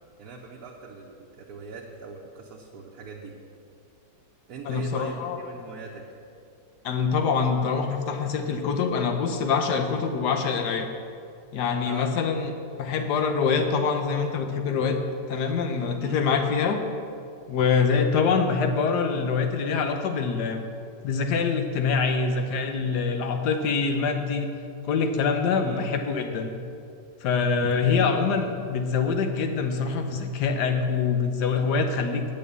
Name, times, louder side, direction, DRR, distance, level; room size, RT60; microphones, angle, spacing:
voice 1, 0.2-3.3 4.5-6.1 11.8-12.1 16.0-16.2 25.6-25.8 27.8-28.2, right 4 dB, 60° right, -2 dB, 1.3 m, -41 dB
voice 2, 4.7-5.4 6.8-10.9 11.5-12.5 12.8-15.0 15.3-16.8 17.5-20.7 21.0-24.5 24.8-26.5 27.2-32.3, left 5 dB, 70° left, 6 dB, 1.4 m, -25 dB
8.8 x 8.7 x 6.8 m, 2.5 s
omnidirectional pair, 1.9 m